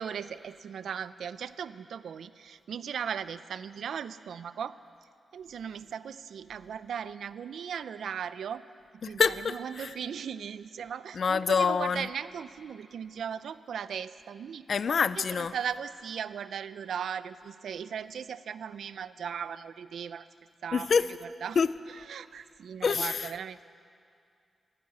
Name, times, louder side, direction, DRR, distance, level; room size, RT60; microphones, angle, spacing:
voice 1, 0.0-4.8 5.3-8.6 9.1-14.6 15.2-20.3 20.6-21.6 21.9-23.6, right 7 dB, 80° right, 0.4 m, -38 dB
voice 2, 9.0-9.9 11.2-12.1 14.7-15.5 20.7-21.1 21.6-21.7 22.8-23.3, left 5 dB, 45° left, 0.3 m, -26 dB
15.0 x 12.0 x 8.1 m
wide cardioid pair, 170°, 0 cm